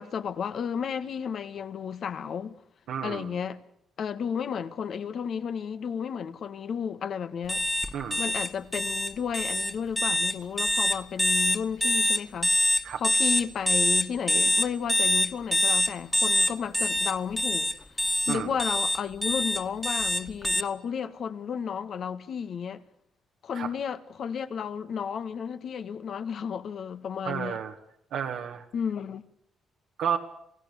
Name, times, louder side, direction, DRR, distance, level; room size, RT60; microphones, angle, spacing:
voice 1, 0.0-2.5 3.0-3.6 4.0-7.6 8.2-12.5 13.0-22.8 23.4-27.6 28.7-29.2, left 7 dB, 60° left, 1.6 m, -33 dB
voice 2, 2.9-3.3 7.9-8.2 12.8-13.0 18.3-18.5 23.5-23.7 27.3-27.8 28.1-28.6 30.0-30.2, right 8 dB, 75° right, 1.8 m, -31 dB
sound 1, 7.5-20.6, left 1 dB, 5° left, 1.9 m, -25 dB
28.0 x 16.5 x 8.4 m
cardioid pair, 90°, 0 cm